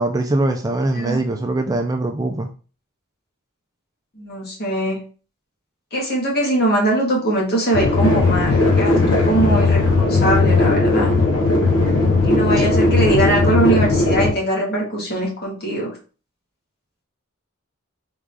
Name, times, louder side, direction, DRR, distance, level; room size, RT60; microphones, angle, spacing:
voice 1, 0.0-2.5, right 2 dB, 15° right, 4 dB, 0.3 m, -22 dB
voice 2, 0.9-1.2 4.1-5.0 5.9-11.1 12.2-16.0, right 1 dB, 45° left, -2 dB, 1.5 m, -21 dB
sound 1, 7.7-14.3, left 3 dB, 65° left, 1.1 m, -17 dB
3.7 x 3.6 x 3.3 m, 0.37 s
head